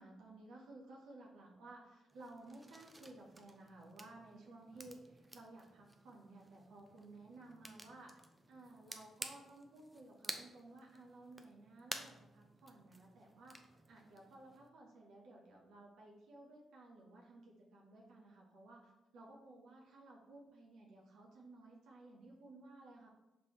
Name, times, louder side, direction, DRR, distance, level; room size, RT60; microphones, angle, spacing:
voice 1, 0.0-23.1, right 2 dB, 70° right, -2 dB, 0.8 m, -57 dB
sound 1, 2.1-14.7, right 1 dB, 20° right, 0.6 m, -53 dB
5.2 x 3.2 x 2.9 m, 1.0 s
hypercardioid pair, 40°, 0 cm